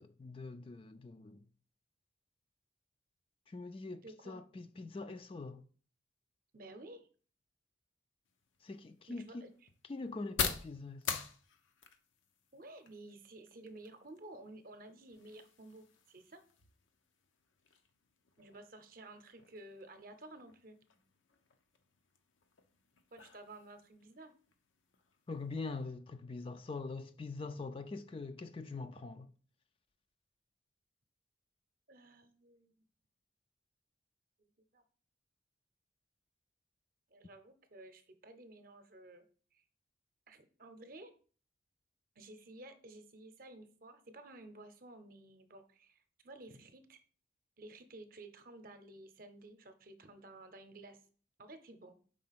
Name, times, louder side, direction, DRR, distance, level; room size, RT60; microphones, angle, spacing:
voice 1, 0.0-1.4 3.5-5.6 8.6-9.3 9.9-11.2 25.3-29.3, left 3 dB, 30° left, 0.3 m, -44 dB
voice 2, 4.0-4.4 6.5-7.1 9.1-9.5 12.5-16.4 18.4-20.8 23.1-24.3 31.9-32.8 34.4-34.8 37.1-39.3 39.5-39.6 40.3-41.1 42.2-47.0 47.6-51.0 51.4-52.0, right 2 dB, 50° right, 0.7 m, -53 dB
sound 1, 8.2-25.8, left 6 dB, 90° left, 0.8 m, -46 dB
5.1 x 3.8 x 5.8 m
head